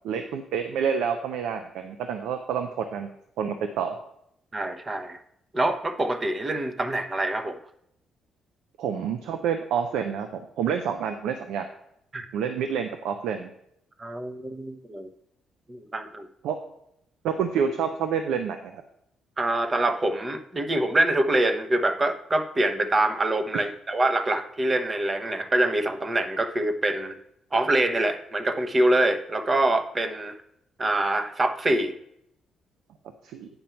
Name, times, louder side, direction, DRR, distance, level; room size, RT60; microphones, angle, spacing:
voice 1, 0.0-3.1 3.4-4.0 8.8-11.7 12.3-13.5 16.4-16.6 17.2-18.8 33.2-33.5, right 7 dB, 85° right, 7 dB, 0.6 m, -28 dB
voice 2, 4.5-5.2 5.5-7.6 12.1-12.3 14.0-15.1 15.7-16.3 19.4-27.1 27.5-30.3 30.8-31.9, right 1 dB, 25° right, 8 dB, 0.9 m, -25 dB
8.9 x 5.2 x 4.5 m, 0.75 s
cardioid pair, 90°, 0 cm